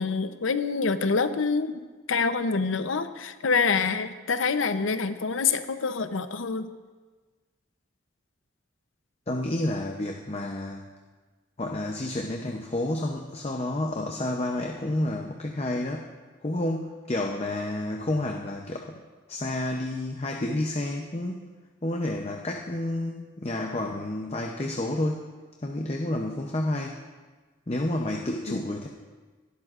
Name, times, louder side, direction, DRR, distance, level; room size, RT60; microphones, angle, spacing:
voice 1, 0.0-1.8 2.1-6.7 28.5-28.6, left 4 dB, 85° left, 10 dB, 0.7 m, -26 dB
voice 2, 9.3-10.9 11.6-16.1 16.4-19.0 19.3-21.4 21.8-25.2 25.6-27.0 27.7-28.9, left 1 dB, 30° left, 1 dB, 0.7 m, -30 dB
18.5 x 12.5 x 2.5 m, 1.4 s
head